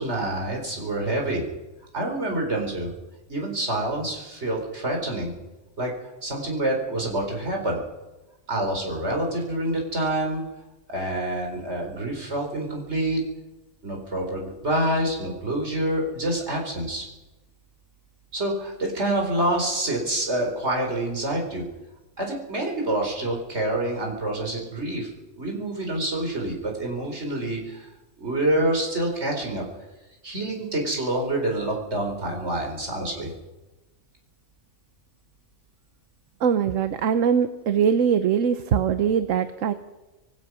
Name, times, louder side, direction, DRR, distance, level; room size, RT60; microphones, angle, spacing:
voice 1, 0.0-1.4 1.9-2.9 3.3-5.3 5.8-5.9 6.2-7.8 8.5-10.4 10.9-13.2 13.8-17.1 18.3-21.7 22.2-25.1 25.4-27.9 28.2-29.6 30.2-33.3, right 1 dB, 50° right, 0 dB, 4.6 m, -27 dB
voice 2, 36.4-39.7, right 7 dB, 70° right, 11 dB, 1.2 m, -22 dB
25.5 x 16.5 x 6.2 m, 1.1 s
omnidirectional pair, 1.4 m